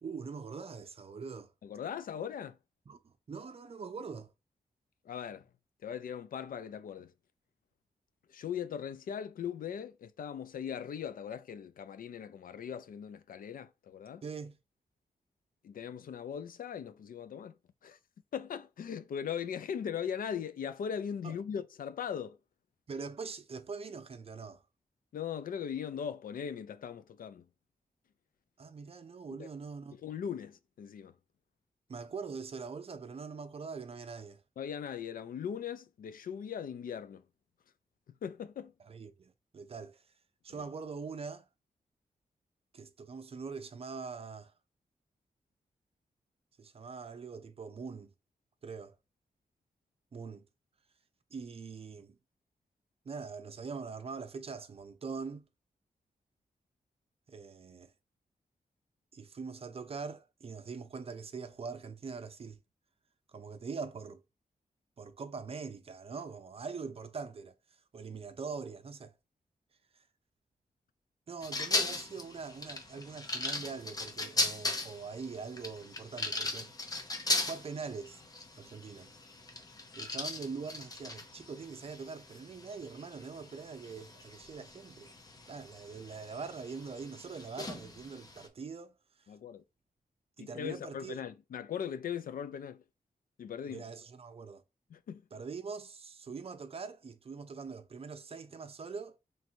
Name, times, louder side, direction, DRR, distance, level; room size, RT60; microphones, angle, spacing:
voice 1, 0.0-1.5 2.9-4.3 14.2-14.6 21.2-21.4 22.9-24.6 28.6-30.0 31.9-34.4 38.9-40.0 40.4-41.5 42.7-44.5 46.6-48.1 48.6-49.0 50.1-50.5 51.3-52.2 53.0-55.5 57.3-57.9 59.1-62.6 63.3-64.2 65.0-67.6 67.9-69.1 69.9-70.0 71.3-76.7 77.5-78.2 78.5-79.1 80.0-85.1 85.5-89.3 90.4-91.2 93.7-94.6 95.3-99.2, right 5 dB, 40° right, 0.5 m, -43 dB
voice 2, 1.6-2.6 5.0-5.5 5.8-7.1 8.3-14.2 15.6-17.5 17.8-18.0 18.3-22.4 25.1-27.5 29.4-29.5 30.0-31.1 34.6-37.2 38.2-38.7 40.5-40.6 89.3-89.6 90.4-92.8 93.4-93.8 94.9-95.2, left 8 dB, 70° left, 0.4 m, -39 dB
sound 1, 71.4-88.5, left 2 dB, 25° left, 0.6 m, -38 dB
3.2 x 2.5 x 4.4 m
wide cardioid pair, 140°, 15 cm